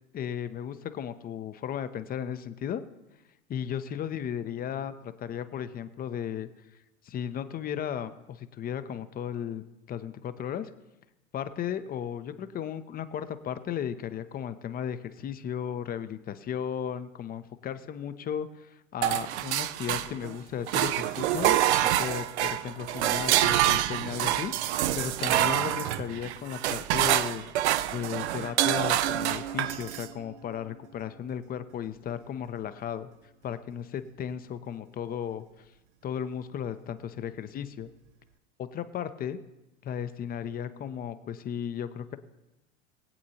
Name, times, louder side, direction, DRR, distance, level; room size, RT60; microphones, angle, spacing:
voice 1, 0.1-2.8 3.5-6.5 7.0-10.7 11.3-27.5 27.9-33.1 33.4-35.4 36.0-37.9 38.6-39.4 39.8-42.2, left 9 dB, 25° left, 11 dB, 0.7 m, -35 dB
sound 1, 19.0-20.3 20.7-30.1, right 13 dB, 60° right, 0.7 m, -26 dB
21.0 x 8.5 x 2.8 m, 0.98 s
figure-of-eight pair, 90°, 38 cm